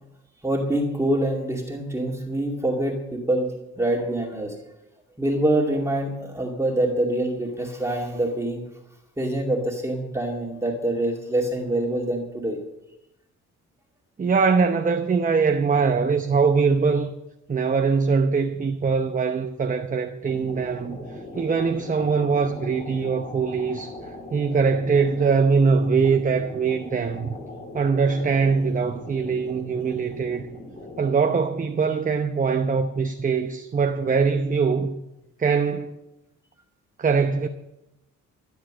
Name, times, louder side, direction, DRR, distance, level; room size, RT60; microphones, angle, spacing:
voice 1, 0.4-4.6 5.2-8.6 9.2-12.6, right 1 dB, 10° right, 2.4 m, -25 dB
voice 2, 14.2-17.1 17.5-21.1 21.3-24.0 24.3-27.4 27.7-30.5 31.0-35.0 35.4-35.9 37.0-37.5, right 5 dB, 25° right, 0.9 m, -22 dB
sound 1, 20.2-31.1, left 2 dB, 30° left, 2.8 m, -40 dB
15.0 x 7.5 x 7.6 m
cardioid pair, 90°, 30 cm